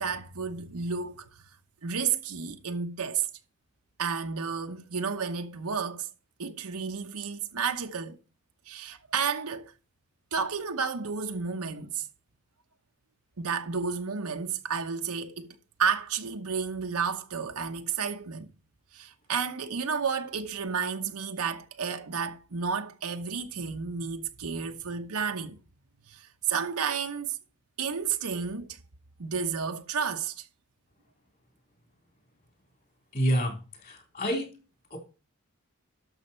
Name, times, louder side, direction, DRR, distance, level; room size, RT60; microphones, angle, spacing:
voice 1, 0.0-1.4 1.8-3.3 4.0-6.1 6.4-8.2 8.7-9.7 10.3-12.1 13.4-18.5 18.9-25.6 26.1-27.4 27.8-28.8 29.2-30.5, right 6 dB, 90° right, 1.0 m, -31 dB
voice 2, 33.1-33.6 33.8-34.4 34.9-35.0, equal, 40° left, 3.9 m, -27 dB
12.0 x 6.6 x 4.5 m
head